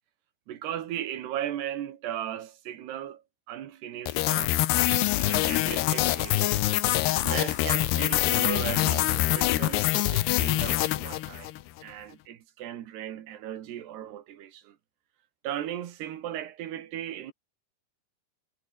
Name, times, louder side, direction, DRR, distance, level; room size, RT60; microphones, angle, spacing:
voice 1, 0.5-3.2 3.5-6.6 7.2-11.5 11.8-14.8 15.4-17.3, right 11 dB, 85° right, 4.0 m, -37 dB
sound 1, 4.1-11.6, left 16 dB, 85° left, 3.2 m, -25 dB
omnidirectional pair, 4.6 m